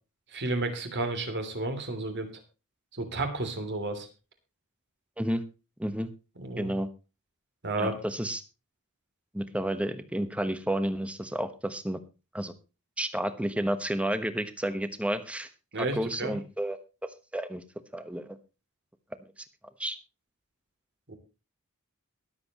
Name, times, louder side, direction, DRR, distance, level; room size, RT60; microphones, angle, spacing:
voice 1, 0.3-2.3 2.9-4.1 6.4-6.7 7.6-7.9 15.7-16.3 21.1-21.2, right 2 dB, 50° right, 7 dB, 3.0 m, -32 dB
voice 2, 5.8-6.1 6.6-6.9 7.8-8.4 9.3-12.0 12.3-12.5 13.0-15.5 15.8-16.8 17.3-17.6 17.9-18.4 19.8-20.0, right 1 dB, 5° right, 11 dB, 1.1 m, -31 dB
22.5 x 7.9 x 3.0 m, 0.30 s
head